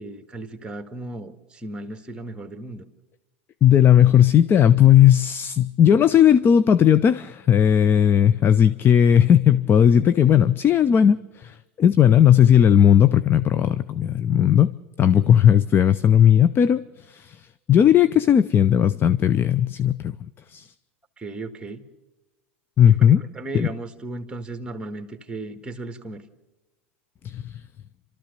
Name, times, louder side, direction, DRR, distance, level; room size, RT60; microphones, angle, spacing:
voice 1, 0.0-2.9 21.2-21.8 22.9-26.2, right 2 dB, 10° right, 7 dB, 1.8 m, -35 dB
voice 2, 3.6-14.7 15.0-20.1 20.5-20.7 22.8-23.2 23.5-23.7 27.2-27.5, left 9 dB, 30° left, 15 dB, 0.6 m, -16 dB
30.0 x 13.5 x 6.7 m, 1.1 s
hypercardioid pair, 95°, 7 cm